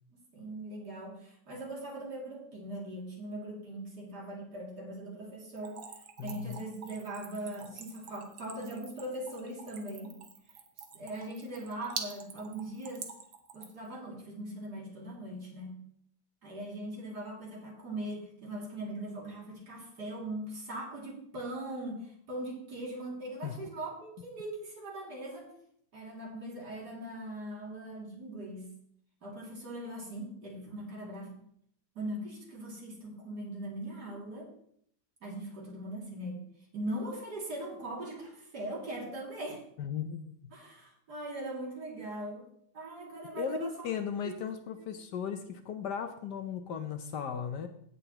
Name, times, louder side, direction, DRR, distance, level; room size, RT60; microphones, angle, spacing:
voice 1, 0.3-5.8 6.2-10.2 10.9-13.1 13.5-15.8 16.4-25.5 25.9-28.7 29.2-31.3 31.9-34.5 35.2-36.4 36.7-39.6 40.5-42.5 42.7-43.9 44.2-44.3 44.8-44.9, right 1 dB, 55° right, -3 dB, 3.1 m, -40 dB
Splash splatter / Trickle dribble, 5.6-13.9, right 6 dB, 90° right, 1.9 m, -45 dB
voice 2, 6.2-6.6 23.4-23.6 39.8-40.5 43.3-47.7, left 7 dB, 65° left, 7 dB, 1.3 m, -36 dB
16.5 x 6.9 x 2.9 m, 0.67 s
omnidirectional pair, 2.1 m